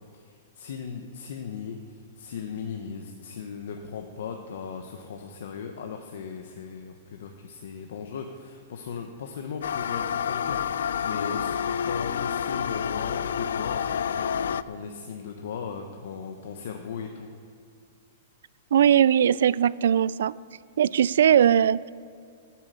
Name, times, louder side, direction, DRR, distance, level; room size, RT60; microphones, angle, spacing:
voice 1, 0.1-10.6 11.0-13.8 14.1-17.3, left 6 dB, 65° left, 4 dB, 1.0 m, -37 dB
sound 1, 9.6-14.6, left 8 dB, 80° left, 0.3 m, -29 dB
voice 2, 18.7-20.3 20.8-21.9, right 9 dB, 75° right, 20 dB, 0.3 m, -20 dB
10.5 x 7.6 x 8.7 m, 2.4 s
hypercardioid pair, 165°, 0 cm